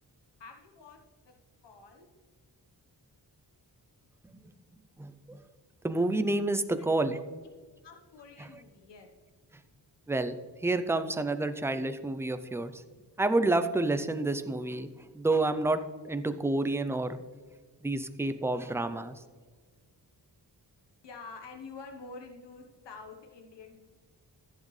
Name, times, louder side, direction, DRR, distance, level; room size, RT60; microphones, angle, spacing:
voice 1, 0.4-1.0 1.3-1.4 1.6-2.1 6.8-7.0 7.8-9.1 21.0-23.8, left 4 dB, 90° left, 3 dB, 1.2 m, -48 dB
voice 2, 5.0-5.4 5.8-7.2 8.4-8.5 10.1-12.8 13.2-17.2 17.8-19.2, right 2 dB, 5° right, 10 dB, 0.4 m, -29 dB
14.5 x 7.4 x 3.2 m, 1.5 s
wide cardioid pair, 175°, 41 cm